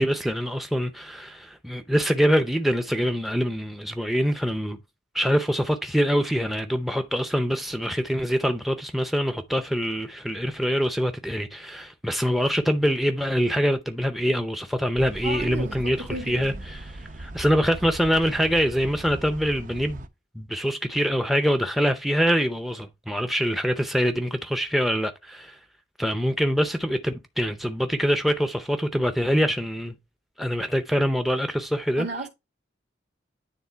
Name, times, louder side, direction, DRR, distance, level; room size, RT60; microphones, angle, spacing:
voice 1, 0.0-4.8 5.1-20.0 20.4-25.6 26.0-29.9 30.4-32.1, equal, ahead, 0.5 m, -24 dB
sound 1, 15.0-20.1, right 1 dB, 45° right, 0.6 m, -39 dB
voice 2, 15.2-16.6 32.0-32.3, right 2 dB, 60° right, 2.0 m, -34 dB
9.6 x 3.5 x 4.4 m
head